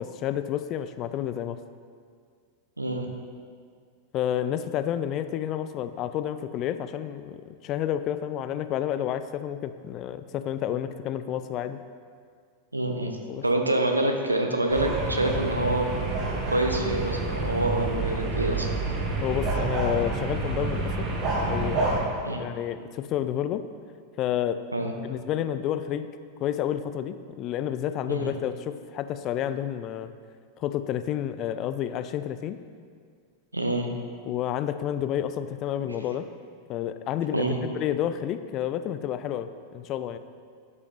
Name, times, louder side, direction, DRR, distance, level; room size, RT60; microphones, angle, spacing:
voice 1, 0.0-1.6 4.1-11.8 13.3-13.4 19.2-21.1 21.5-23.6 24.2-24.6 25.0-26.1 26.4-30.1 30.6-32.6 34.3-36.3 36.7-40.2, left 10 dB, 35° left, 11 dB, 0.3 m, -30 dB
voice 2, 2.8-3.1 12.7-13.2 13.4-16.0 16.5-18.7 22.2-22.4 24.7-24.9 28.1-28.3 33.5-33.9 37.3-37.6, right 1 dB, 85° right, 3 dB, 0.7 m, -26 dB
sound 1, 14.7-22.0, right 3 dB, 40° right, 1.5 m, -28 dB
11.0 x 4.8 x 3.5 m, 2.1 s
figure-of-eight pair, 90°, 0 cm